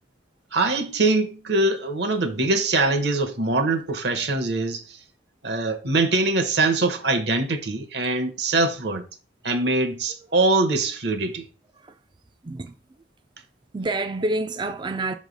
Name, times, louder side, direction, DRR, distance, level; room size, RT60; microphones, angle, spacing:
voice 1, 0.5-5.0 5.4-9.0 9.4-11.4, right 2 dB, 60° right, 0.9 m, -23 dB
voice 2, 12.4-12.8 13.7-15.1, right 2 dB, 25° right, 0.4 m, -28 dB
6.3 x 3.2 x 5.2 m
head